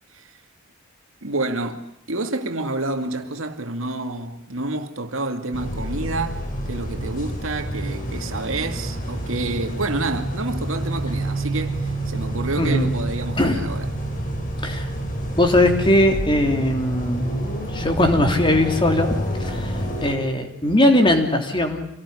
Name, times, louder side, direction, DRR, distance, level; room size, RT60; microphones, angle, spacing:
voice 1, 1.2-13.9, right 2 dB, 75° right, 2.3 m, -28 dB
sound 1, 5.5-20.1, right 1 dB, 40° left, 4.7 m, -28 dB
voice 2, 12.6-12.9 13.4-13.6 14.6-14.9 15.3-17.3 17.7-19.1 19.4-21.9, left 1 dB, 25° left, 3.2 m, -19 dB
26.5 x 18.5 x 10.0 m
head